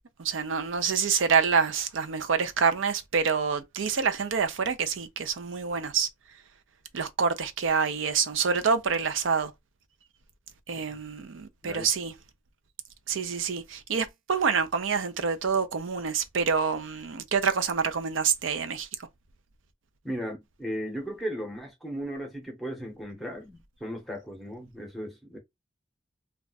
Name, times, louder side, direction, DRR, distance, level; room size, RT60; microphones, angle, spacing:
voice 1, 0.2-6.1 6.9-9.5 10.7-12.1 13.1-18.9, right 6 dB, 85° right, 0.5 m, -27 dB
voice 2, 20.0-25.4, equal, ahead, 0.9 m, -36 dB
2.3 x 2.3 x 3.9 m
head